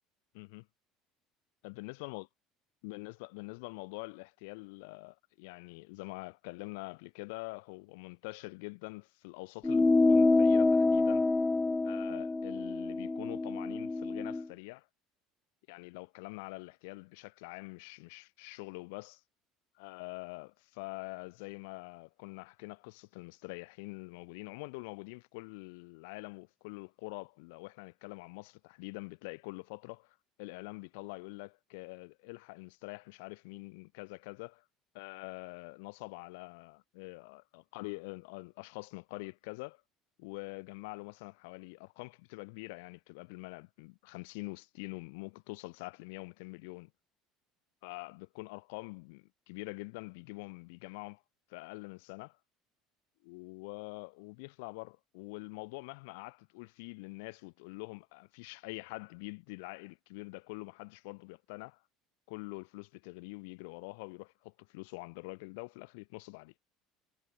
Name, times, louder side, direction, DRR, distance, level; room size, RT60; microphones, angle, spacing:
voice 1, 0.3-0.7 1.6-2.3 2.8-11.3 11.8-14.9 15.7-19.2 19.8-34.6 34.9-39.8 40.2-46.9 47.8-51.2 51.5-52.4 53.2-61.8 62.3-66.5, left 28 dB, 80° left, 6.3 m, -45 dB
sound 1, 9.6-14.5, left 3 dB, 15° left, 0.5 m, -27 dB
supercardioid pair, 85°, 0 cm